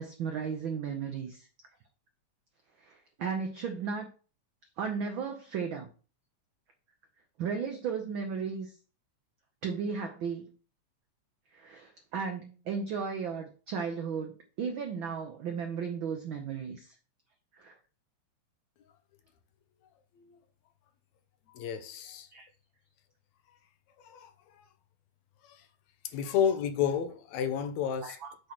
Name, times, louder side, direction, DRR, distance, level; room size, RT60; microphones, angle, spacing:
voice 1, 0.0-1.5 2.8-4.1 4.8-5.9 7.4-8.7 9.6-10.5 11.5-16.9 17.6-17.7 22.3-22.5 28.0-28.5, right 6 dB, 80° right, 1.1 m, -35 dB
voice 2, 21.5-22.3 24.0-24.3 25.4-25.6 26.1-28.2, left 8 dB, 75° left, 2.0 m, -31 dB
8.0 x 3.2 x 5.9 m
omnidirectional pair, 3.3 m